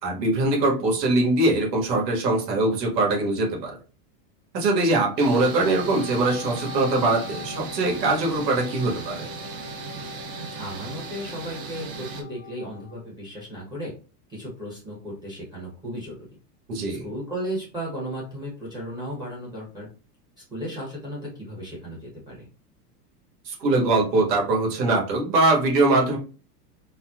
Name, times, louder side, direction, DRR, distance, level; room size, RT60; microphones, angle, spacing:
voice 1, 0.0-3.7 4.5-9.3 16.7-17.0 23.4-26.2, right 2 dB, 85° right, -1 dB, 1.6 m, -22 dB
Wind instrument woodwind instrument, 4.9-12.9, left 6 dB, 25° left, 0.5 m, -42 dB
sound 1, 5.2-12.2, right 6 dB, 40° right, 0.5 m, -37 dB
voice 2, 10.5-13.9 14.3-16.3 16.9-19.9 20.5-22.4, equal, 10° right, -6 dB, 0.8 m, -35 dB
4.2 x 2.2 x 2.3 m, 0.36 s
supercardioid pair, 155°, 48 cm